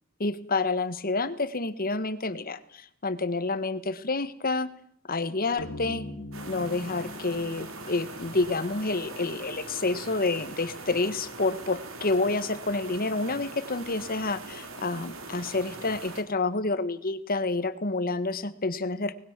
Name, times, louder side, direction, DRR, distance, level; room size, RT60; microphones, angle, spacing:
voice 1, 0.2-4.7 5.1-6.0 6.4-19.1, left 3 dB, 45° left, 13 dB, 1.6 m, -29 dB
sound 1, 5.6-9.1, left 1 dB, 75° left, 2.9 m, -42 dB
sound 2, 6.3-16.2, right 3 dB, 70° right, 4.0 m, -42 dB
25.0 x 20.0 x 7.6 m, 0.66 s
head